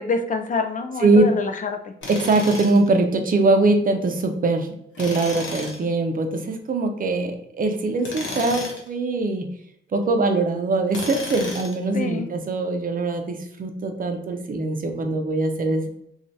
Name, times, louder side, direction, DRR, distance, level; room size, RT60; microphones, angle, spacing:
voice 1, 0.0-1.7 11.9-12.3, left 4 dB, 45° left, 6 dB, 0.4 m, -26 dB
Tools, 2.0-2.9 4.9-5.8 8.0-8.9 10.9-11.8, left 2 dB, 75° left, 0.9 m, -33 dB
voice 2, 2.1-4.7 5.0-7.3 7.6-9.4 9.9-15.9, right 2 dB, 45° right, 5 dB, 0.6 m, -22 dB
4.3 x 2.4 x 2.6 m, 0.75 s
wide cardioid pair, 115°, 19 cm